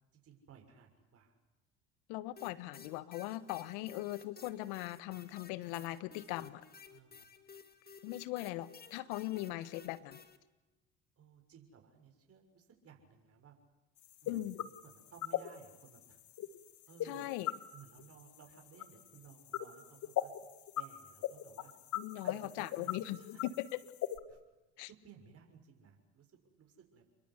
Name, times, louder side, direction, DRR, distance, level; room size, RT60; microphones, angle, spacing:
voice 1, 0.1-1.4 6.9-7.2 11.2-13.5 14.2-16.2 16.9-17.3 17.7-20.3 20.8-21.7 22.2-23.4 24.3-24.4 24.8-26.3 26.6-27.0, right 7 dB, 45° right, 3 dB, 6.3 m, -58 dB
voice 2, 2.1-6.6 8.0-10.2 14.3-14.6 17.0-17.5 21.9-23.8 24.8-24.9, left 16 dB, 75° left, 15 dB, 1.5 m, -40 dB
sound 1, 2.4-10.4, left 6 dB, 25° left, 2.4 m, -55 dB
sound 2, 14.0-24.2, left 12 dB, 55° left, 1.9 m, -40 dB
29.0 x 22.5 x 8.4 m, 1.1 s
hypercardioid pair, 75°, 35 cm